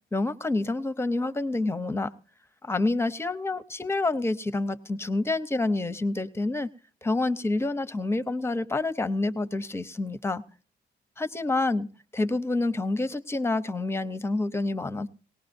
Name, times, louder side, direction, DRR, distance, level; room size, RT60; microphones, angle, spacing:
voice 1, 0.1-2.1 2.6-6.7 7.0-10.4 11.2-11.9 12.1-15.1, left 2 dB, 10° left, 14 dB, 0.6 m, -28 dB
19.0 x 18.0 x 2.6 m, 0.37 s
cardioid pair, 90°, 20 cm